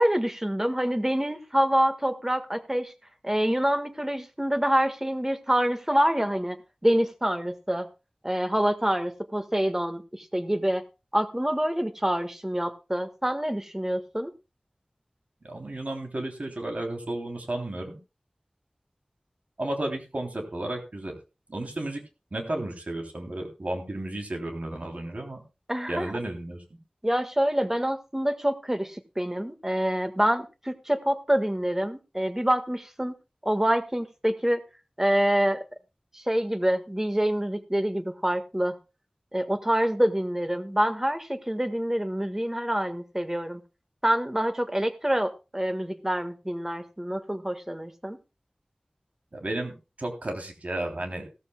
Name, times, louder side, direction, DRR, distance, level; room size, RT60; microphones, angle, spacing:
voice 1, 0.0-2.9 3.2-6.6 6.8-7.9 8.2-10.8 11.1-14.3 25.7-26.1 27.0-33.1 33.4-34.6 35.0-35.6 36.1-38.8 39.3-43.6 44.0-48.2, equal, 15° right, 9 dB, 1.5 m, -26 dB
voice 2, 15.4-18.0 19.6-21.1 21.5-22.0 22.3-25.4 25.9-26.8 49.3-51.2, right 1 dB, 65° right, 3 dB, 3.3 m, -33 dB
16.0 x 14.0 x 2.3 m, 0.28 s
wide cardioid pair, 45°, 3 cm